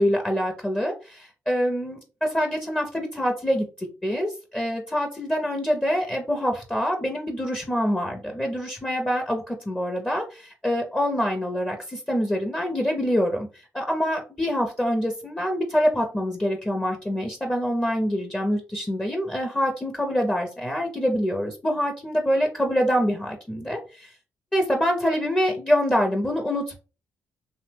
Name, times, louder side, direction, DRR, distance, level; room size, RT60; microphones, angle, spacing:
voice 1, 0.0-24.1 24.5-26.8, equal, 15° left, 2 dB, 0.5 m, -25 dB
2.7 x 2.0 x 3.2 m, 0.34 s
supercardioid pair, 60°, 6 cm